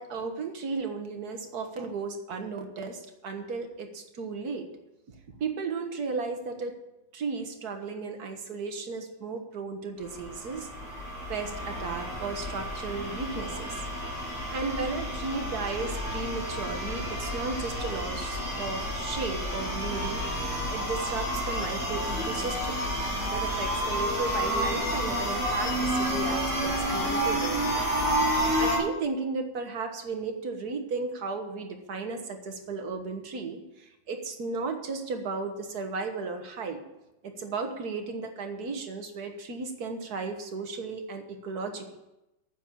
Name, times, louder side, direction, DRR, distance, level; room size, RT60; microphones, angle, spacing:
voice 1, 0.0-4.7 5.4-6.7 7.1-10.7 11.3-14.1 14.5-20.2 20.7-22.8 23.3-27.9 28.6-36.8 37.2-42.0, right 4 dB, 55° right, 5 dB, 1.9 m, -35 dB
sound 1, 10.0-28.8, equal, 60° left, 4.6 m, -30 dB
9.3 x 7.6 x 8.6 m, 0.93 s
omnidirectional pair, 2.1 m